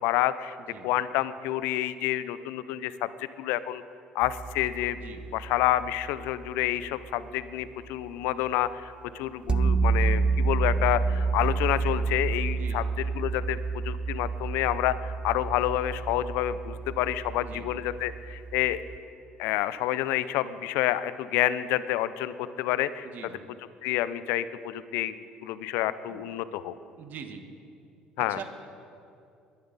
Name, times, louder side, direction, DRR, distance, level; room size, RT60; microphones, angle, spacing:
voice 1, 0.0-0.6 0.8-3.8 4.1-5.0 5.3-12.8 13.2-13.6 13.8-18.8 19.4-23.1 23.8-25.2 25.4-26.7 28.2-28.4, left 13 dB, 75° left, 15 dB, 0.5 m, -28 dB
sound 1, 4.2-7.5 9.5-19.0, right 4 dB, 25° right, 0.7 m, -29 dB
voice 2, 4.9-5.2 12.6-12.9 17.4-17.7 23.0-23.4 26.1-26.3 27.0-27.4 28.2-28.4, right 7 dB, 60° right, 6 dB, 1.6 m, -43 dB
21.0 x 10.5 x 4.1 m, 2.5 s
supercardioid pair, 70°, 4 cm